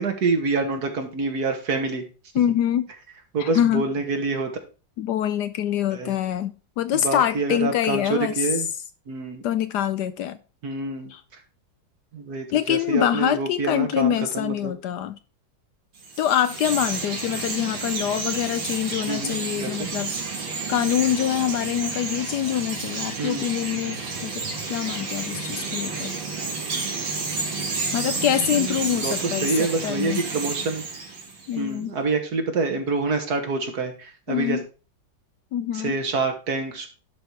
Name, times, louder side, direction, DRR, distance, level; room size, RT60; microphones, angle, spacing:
voice 1, 0.0-2.0 3.3-4.5 5.9-6.2 6.9-8.7 9.1-9.4 10.6-11.4 12.1-14.7 19.1-19.9 23.2-23.5 28.2-30.8 31.6-34.6 35.7-36.9, right 3 dB, 55° right, 1.9 m, -27 dB
voice 2, 2.3-2.9 3.4-3.8 5.0-8.3 9.4-10.4 11.1-11.2 12.5-15.2 16.2-20.1 20.7-26.2 27.9-30.2 31.5-31.9 34.3-34.6 35.5-36.0, left 10 dB, 75° left, 1.1 m, -25 dB
Chirp tweet, 16.0-31.6, right 4 dB, 85° right, 2.7 m, -31 dB
11.0 x 4.1 x 4.7 m
omnidirectional pair, 2.0 m